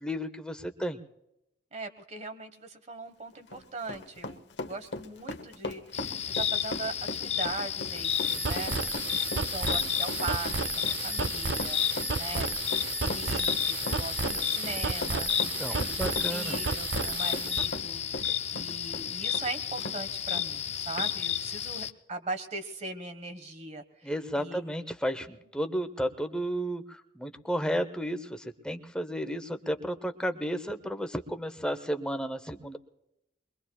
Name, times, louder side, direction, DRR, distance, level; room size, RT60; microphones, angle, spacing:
voice 1, 0.0-1.0 15.4-16.6 24.0-32.8, equal, 5° left, 7 dB, 0.8 m, -33 dB
voice 2, 1.7-8.7 9.3-24.6, right 3 dB, 40° right, 8 dB, 1.3 m, -40 dB
Run, 3.3-20.0 20.3-20.5 21.0-21.1, left 2 dB, 70° left, 1.0 m, -38 dB
sound 1, 5.9-21.9, left 9 dB, 40° left, 0.5 m, -32 dB
sound 2, 7.9-17.7, right 5 dB, 75° right, 0.6 m, -33 dB
23.0 x 22.5 x 2.3 m, 0.86 s
head